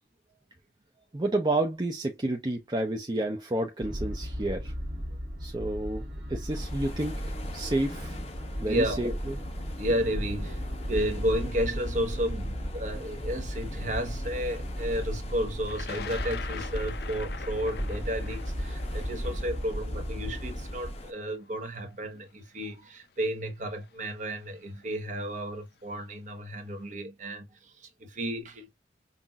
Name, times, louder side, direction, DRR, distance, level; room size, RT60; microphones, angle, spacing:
voice 1, 1.1-4.7 5.4-8.2 8.6-9.4, right 1 dB, 25° right, 0.5 m, -30 dB
sound 1, 3.8-20.9, equal, 60° right, 1.6 m, -35 dB
sound 2, 6.5-21.1, left 2 dB, 35° left, 0.8 m, -45 dB
voice 2, 8.5-9.1 9.8-10.6 10.9-28.7, equal, 40° right, 0.9 m, -32 dB
Thunder, 15.7-21.7 22.6-22.7 23.8-24.1 24.4-24.9, left 6 dB, 60° left, 0.5 m, -43 dB
5.6 x 2.5 x 2.3 m
head